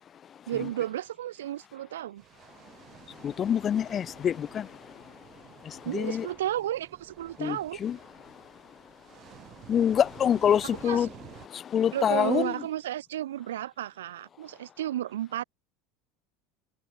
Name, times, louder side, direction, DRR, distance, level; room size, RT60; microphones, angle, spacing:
voice 1, 0.5-2.2 5.8-7.8 10.8-11.1 11.9-15.4, right 12 dB, 85° right, 5.3 m, -33 dB
sound 1, 2.2-11.5, right 13 dB, 50° right, 7.3 m, -52 dB
voice 2, 3.2-4.7 5.6-6.3 7.4-8.0 9.7-11.1 11.5-12.5, left 9 dB, 35° left, 3.0 m, -26 dB
hypercardioid pair, 90°, 0 cm